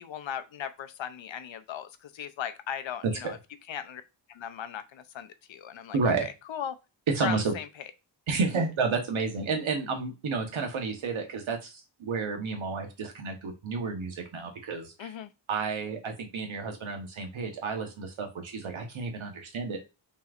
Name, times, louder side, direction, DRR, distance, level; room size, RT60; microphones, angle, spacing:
voice 1, 0.0-3.4 3.7-4.0 4.3-6.8 7.2-7.7 15.0-15.3, left 9 dB, 75° left, 10 dB, 0.7 m, -37 dB
voice 2, 3.0-3.3 5.9-6.3 7.1-7.5 8.3-15.1 15.5-19.9, right 4 dB, 85° right, 3 dB, 1.2 m, -31 dB
5.6 x 3.1 x 2.4 m, 0.27 s
wide cardioid pair, 130°, 46 cm